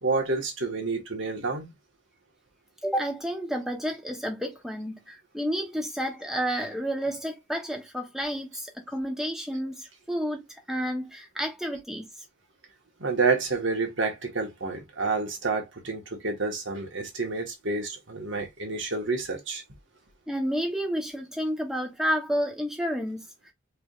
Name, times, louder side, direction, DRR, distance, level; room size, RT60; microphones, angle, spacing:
voice 1, 0.0-1.7 13.0-19.6, right 3 dB, 70° right, 1.6 m, -29 dB
voice 2, 2.8-12.1 20.3-23.3, equal, ahead, 1.0 m, -30 dB
4.9 x 3.4 x 2.5 m
head